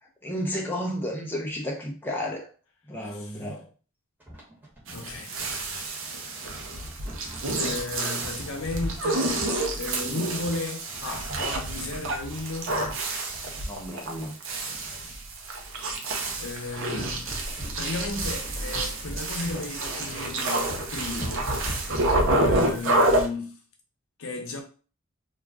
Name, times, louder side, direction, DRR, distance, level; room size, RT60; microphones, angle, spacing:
voice 1, 0.2-2.5 2.9-3.7 13.7-14.4, equal, 10° left, 0.5 m, -32 dB
sound 1, 4.2-11.0, equal, 10° right, 1.1 m, -47 dB
voice 2, 4.9-5.9 7.5-9.3 9.8-12.7 14.7-15.1 16.4-17.4 17.8-21.5 22.4-23.5 24.2-24.6, left 3 dB, 70° left, 0.7 m, -34 dB
sound 2, 4.9-23.3, right 2 dB, 65° right, 0.6 m, -29 dB
sound 3, 16.8-22.7, equal, 30° left, 1.2 m, -36 dB
2.4 x 2.2 x 3.4 m
head